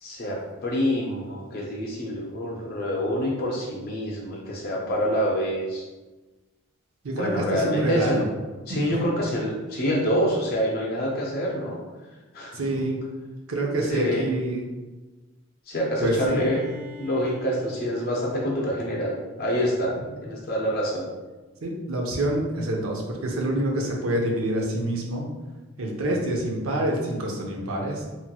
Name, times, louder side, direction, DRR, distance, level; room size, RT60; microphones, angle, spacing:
voice 1, 0.0-5.8 7.2-8.3 8.7-11.8 12.3-12.8 13.9-14.2 15.7-16.6 17.0-19.1 19.4-19.9 20.2-21.0, equal, 45° left, -2 dB, 0.5 m, -26 dB
voice 2, 7.0-8.2 8.7-8.9 12.5-13.0 13.5-14.6 16.0-16.4 21.6-25.3 25.8-28.1, right 1 dB, 90° right, -1 dB, 0.6 m, -26 dB
Bowed string instrument, 15.7-19.5, left 4 dB, 10° right, 0.9 m, -45 dB
2.9 x 2.8 x 2.2 m, 1.2 s
head